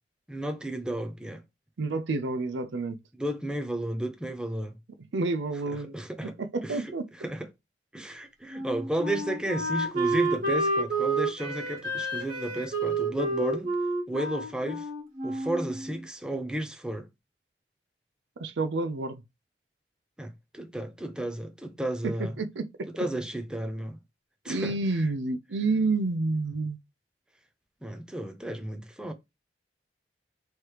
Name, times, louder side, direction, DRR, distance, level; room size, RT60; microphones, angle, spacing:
voice 1, 0.3-1.4 3.2-4.7 5.9-6.3 6.6-6.8 7.2-7.5 7.9-13.7 14.1-14.8 15.2-17.1 20.2-20.3 20.5-22.3 23.0-24.0 24.4-24.8 27.8-29.1, right 1 dB, 5° right, 0.6 m, -33 dB
voice 2, 1.8-3.0 5.1-5.9 6.2-7.1 18.4-19.2 22.0-22.9 24.5-26.8, right 3 dB, 90° right, 0.5 m, -29 dB
Wind instrument woodwind instrument, 8.5-16.0, right 2 dB, 45° right, 1.6 m, -30 dB
3.2 x 3.0 x 4.6 m
head